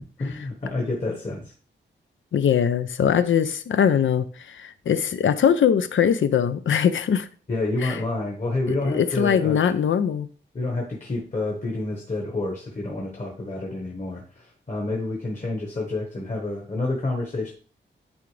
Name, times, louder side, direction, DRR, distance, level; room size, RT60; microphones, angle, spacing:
voice 1, 0.2-1.5 7.5-9.6 10.5-17.5, left 2 dB, 35° left, 0 dB, 1.4 m, -28 dB
voice 2, 2.3-7.3 7.8-8.0 8.8-10.3, left 8 dB, 80° left, 12 dB, 0.5 m, -21 dB
10.0 x 3.9 x 3.3 m, 0.40 s
wide cardioid pair, 120°, 20 cm